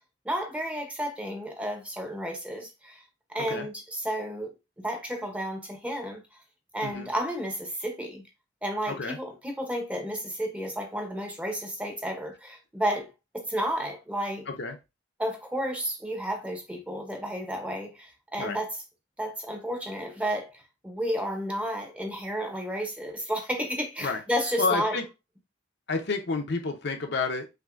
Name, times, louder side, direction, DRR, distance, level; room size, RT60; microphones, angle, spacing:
voice 1, 0.2-3.0 3.3-6.2 6.7-8.2 8.6-14.5 15.2-18.7 19.2-25.0, equal, 5° right, 0.8 m, -32 dB
voice 2, 8.9-9.2 14.5-14.7 18.4-18.6 24.0-24.2 24.6-25.0 25.9-27.5, left 4 dB, 60° left, 0.8 m, -29 dB
5.8 x 2.7 x 2.5 m
head